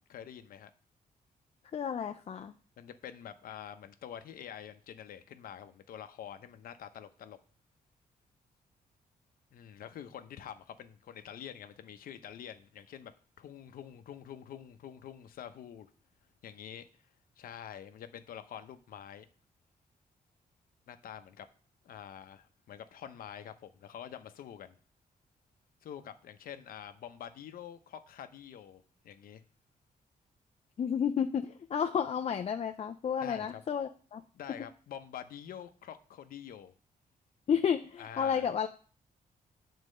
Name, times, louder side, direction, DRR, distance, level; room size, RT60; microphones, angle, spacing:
voice 1, 0.1-0.7 2.8-7.4 9.5-13.1 13.4-15.9 16.4-16.9 17.4-19.3 20.9-21.5 21.8-24.8 25.8-29.4 33.2-33.6 34.3-36.7 38.0-38.5, left 9 dB, 80° left, 0.8 m, -46 dB
voice 2, 1.7-2.5 30.8-34.2 37.5-38.7, left 7 dB, 45° left, 0.5 m, -31 dB
8.2 x 4.3 x 6.5 m
cardioid pair, 115°, 15 cm